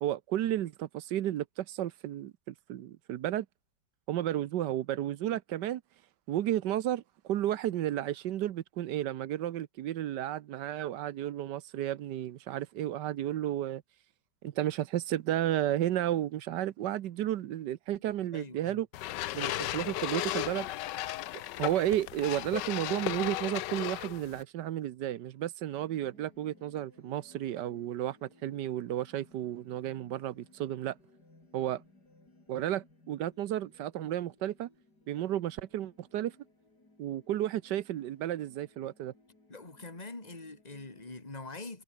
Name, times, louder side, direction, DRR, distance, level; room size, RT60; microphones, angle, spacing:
voice 1, 0.0-3.5 4.1-5.8 6.3-7.0 7.3-13.8 14.4-18.9 19.3-20.7 21.6-30.9 31.5-31.8 32.5-34.7 35.1-36.3 37.0-39.1, right 12 dB, 85° right, 1.4 m, -32 dB
voice 2, 18.3-18.8 39.5-41.8, left 3 dB, 20° left, 3.0 m, -44 dB
sound 1, 18.9-24.4, left 15 dB, 85° left, 1.3 m, -35 dB
sound 2, 25.6-41.2, left 2 dB, 65° left, 7.6 m, -62 dB
omnidirectional pair, 1.8 m